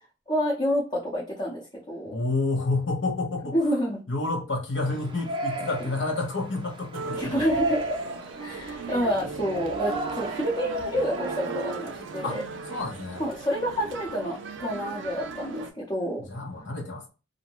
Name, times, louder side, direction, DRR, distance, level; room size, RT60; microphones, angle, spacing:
voice 1, 0.3-2.2 3.5-4.0 7.1-8.0 8.4-12.4 13.2-16.2, equal, 25° left, 0.6 m, -28 dB
voice 2, 2.1-3.6 4.1-7.5 12.2-13.2 16.3-17.1, left 2 dB, 80° left, 0.8 m, -29 dB
Yell, 4.8-12.5, right 2 dB, 25° right, 0.4 m, -35 dB
Male speech man speaking, 6.9-15.7, right 4 dB, 90° right, 0.5 m, -38 dB
2.6 x 2.1 x 2.8 m
head